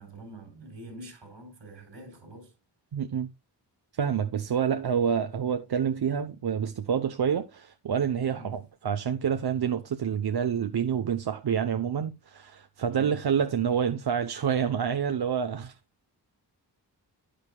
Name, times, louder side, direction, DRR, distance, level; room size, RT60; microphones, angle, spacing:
voice 1, 0.0-2.5 8.4-8.7 12.9-13.3, right 2 dB, 80° right, 4.0 m, -46 dB
voice 2, 2.9-3.3 3.9-15.7, right 7 dB, 60° right, 0.8 m, -28 dB
10.0 x 9.3 x 2.2 m
cardioid pair, 65°, 43 cm